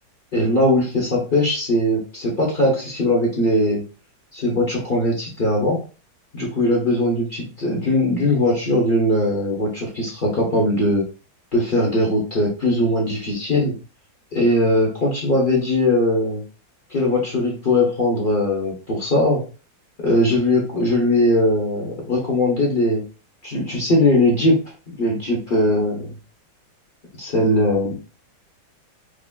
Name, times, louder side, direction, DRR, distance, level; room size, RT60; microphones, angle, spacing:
voice 1, 0.3-3.8 4.3-5.8 6.3-11.1 11.5-13.7 14.3-16.4 16.9-19.4 20.0-23.0 23.4-24.6 25.0-26.1 27.2-27.9, left 1 dB, 40° left, -3 dB, 0.7 m, -20 dB
4.9 x 2.6 x 2.2 m, 0.35 s
omnidirectional pair, 2.2 m